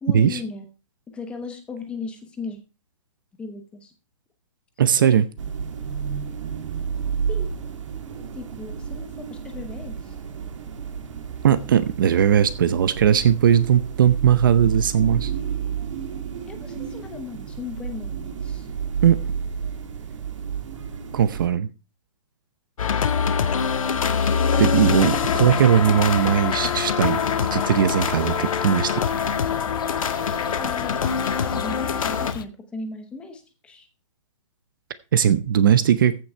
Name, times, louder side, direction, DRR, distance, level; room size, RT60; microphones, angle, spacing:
voice 1, 0.0-0.7 1.1-2.6 3.4-3.9 5.0-5.1 7.3-7.5 8.3-10.2 16.5-18.7 30.6-31.3 31.5-33.9, left 4 dB, 5° left, 0.9 m, -36 dB
voice 2, 4.8-5.2 11.4-15.3 19.0-19.2 21.1-21.7 24.2-27.2 27.5-29.0 35.1-36.2, right 9 dB, 40° right, 0.7 m, -19 dB
sound 1, 5.4-21.5, right 7 dB, 65° right, 2.1 m, -31 dB
sound 2, 22.8-32.3, left 6 dB, 80° left, 1.6 m, -24 dB
sound 3, 25.1-32.4, left 8 dB, 40° left, 0.7 m, -36 dB
14.5 x 6.1 x 4.4 m
hypercardioid pair, 175°, 17 cm